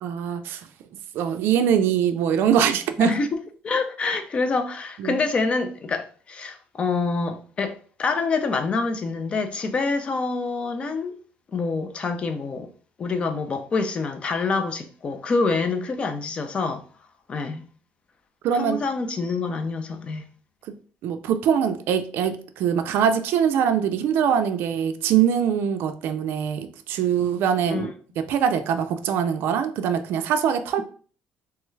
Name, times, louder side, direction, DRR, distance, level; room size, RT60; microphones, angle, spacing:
voice 1, 0.0-0.7 1.1-3.2 5.0-5.2 18.4-18.8 20.7-20.8 21.0-27.9 28.2-30.8, right 8 dB, 70° right, 0.4 m, -23 dB
voice 2, 3.6-11.2 11.5-12.7 13.0-16.8 17.3-17.6 18.5-20.2 27.7-27.9, left 4 dB, 30° left, 0.4 m, -26 dB
3.2 x 2.3 x 3.1 m
cardioid pair, 165°, 4 cm